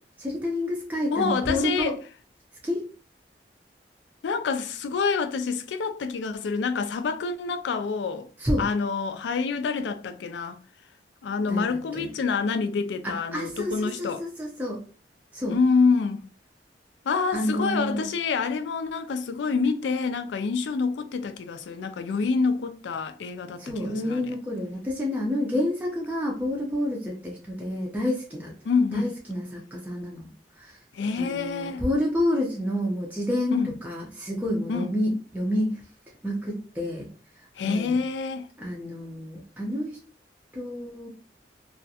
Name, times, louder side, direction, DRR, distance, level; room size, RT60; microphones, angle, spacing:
voice 1, 0.2-1.9 2.6-2.8 8.4-8.6 11.5-12.1 13.0-14.8 15.3-15.6 17.3-18.0 23.6-28.5 28.9-30.3 30.6-30.8 31.2-35.8 36.2-37.1 37.6-38.0 38.6-40.0 40.5-41.1, left 1 dB, 10° right, 0.5 m, -29 dB
voice 2, 1.1-2.0 4.2-8.3 8.6-10.6 11.2-14.2 15.5-16.3 17.1-24.3 28.6-29.1 30.9-31.8 33.5-33.7 34.7-34.9 37.6-38.5, left 4 dB, 85° left, 0.3 m, -27 dB
2.4 x 2.1 x 2.7 m
head